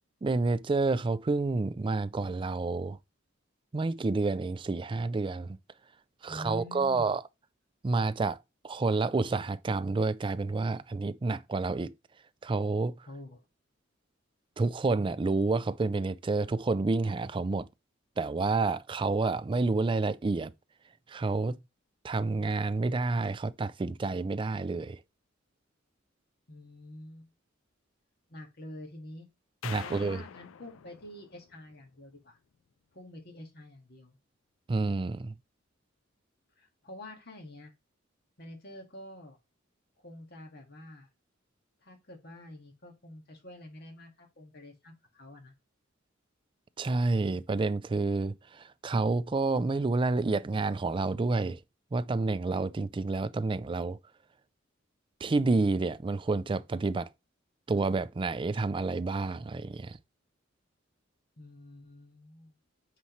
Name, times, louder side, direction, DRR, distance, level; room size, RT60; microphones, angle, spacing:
voice 1, 0.2-3.0 3.7-5.6 6.2-7.2 7.8-8.4 8.6-11.9 12.4-13.1 14.6-17.7 18.2-20.5 21.1-21.6 22.0-25.0 29.6-30.2 34.7-35.3 46.8-51.6 51.9-54.0 55.2-57.1 57.7-60.0, right 3 dB, 25° right, 0.3 m, -29 dB
voice 2, 6.3-7.1 13.1-13.4 26.5-27.3 28.3-29.3 29.8-32.4 32.9-34.2 36.6-37.7 38.4-39.4 40.0-41.1 41.8-45.5 61.4-62.6, left 1 dB, 55° left, 1.9 m, -47 dB
sound 1, 29.6-32.0, left 9 dB, 85° left, 0.4 m, -45 dB
9.2 x 4.2 x 3.2 m
head